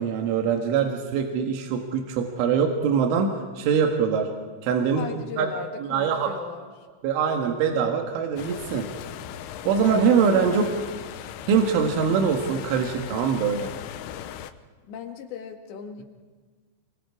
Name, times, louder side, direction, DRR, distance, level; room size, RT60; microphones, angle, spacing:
voice 1, 0.0-4.3 4.6-5.1 5.4-5.5 5.8-6.3 7.0-8.9 9.7-10.6 11.5-13.7, right 6 dB, 80° right, 3 dB, 4.1 m, -23 dB
voice 2, 4.9-6.9 10.4-10.9 14.9-16.0, left 6 dB, 70° left, 3 dB, 4.0 m, -38 dB
sound 1, 8.4-14.5, left 10 dB, 85° left, 3.4 m, -38 dB
28.5 x 22.5 x 4.9 m, 1.5 s
omnidirectional pair, 5.5 m